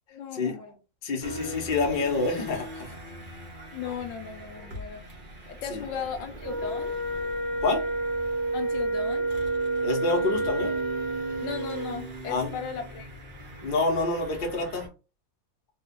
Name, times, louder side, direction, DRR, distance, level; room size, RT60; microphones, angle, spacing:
voice 1, 0.1-0.8 3.7-5.0 5.5-7.0 8.5-9.3 11.4-13.1, left 7 dB, 75° left, 1.2 m, -36 dB
voice 2, 1.0-2.9 5.7-5.8 7.6-7.8 9.8-10.7 12.3-12.5 13.6-14.9, left 3 dB, 45° left, 0.6 m, -27 dB
sound 1, 1.2-14.9, right 2 dB, 70° right, 0.4 m, -40 dB
Wind instrument woodwind instrument, 6.4-12.0, right 2 dB, 45° right, 0.9 m, -29 dB
3.1 x 2.3 x 3.5 m
omnidirectional pair, 2.1 m